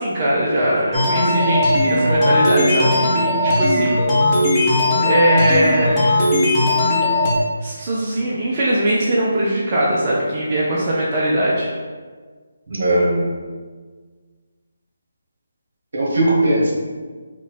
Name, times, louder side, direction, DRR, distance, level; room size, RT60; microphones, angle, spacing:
voice 1, 0.0-4.0 5.0-6.3 7.0-7.1 7.6-11.7, right 1 dB, 30° right, -6 dB, 0.7 m, -20 dB
sound 1, 0.9-7.3, left 1 dB, 20° left, 0.9 m, -17 dB
voice 2, 12.7-13.3 15.9-16.7, right 1 dB, 70° right, -3 dB, 1.4 m, -18 dB
3.9 x 2.4 x 4.1 m, 1.5 s
figure-of-eight pair, 155°, 0 cm